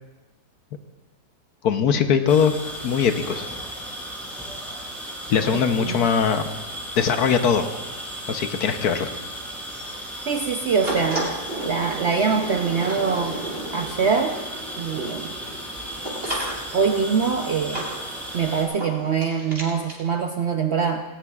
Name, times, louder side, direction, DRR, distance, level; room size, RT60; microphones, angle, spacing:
voice 1, 1.6-2.5 2.8-3.4 5.3-6.4 7.0-7.7 8.3-9.1, left 7 dB, 70° left, 8 dB, 1.3 m, -20 dB
sound 1, 2.3-18.6, equal, ahead, 3.5 m, -35 dB
voice 2, 5.5-6.1 10.3-11.3 11.6-13.4 13.7-14.4 14.8-15.3 16.7-17.9 18.3-21.0, right 5 dB, 60° right, 4 dB, 0.7 m, -24 dB
sound 2, 10.8-20.0, right 1 dB, 35° right, 3.1 m, -34 dB
18.5 x 17.5 x 2.4 m, 1.2 s
omnidirectional pair, 1.8 m